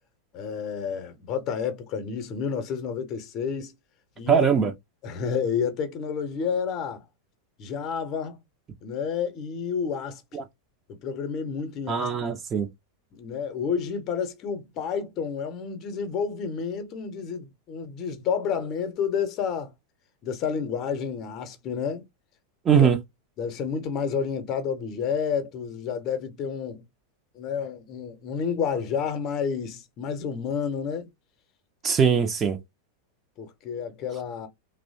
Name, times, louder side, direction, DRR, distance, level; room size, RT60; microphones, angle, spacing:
voice 1, 0.3-3.7 4.2-4.5 5.0-7.0 7.6-8.4 8.8-10.2 10.9-12.1 13.1-19.7 20.2-22.0 22.8-22.9 23.4-26.8 27.3-31.1 33.4-34.5, left 6 dB, 35° left, 0.7 m, -30 dB
voice 2, 4.3-4.7 10.3-10.4 11.9-12.7 22.7-23.0 31.8-32.6, right 7 dB, 25° right, 0.5 m, -21 dB
3.0 x 2.0 x 2.7 m
figure-of-eight pair, 90°, 0 cm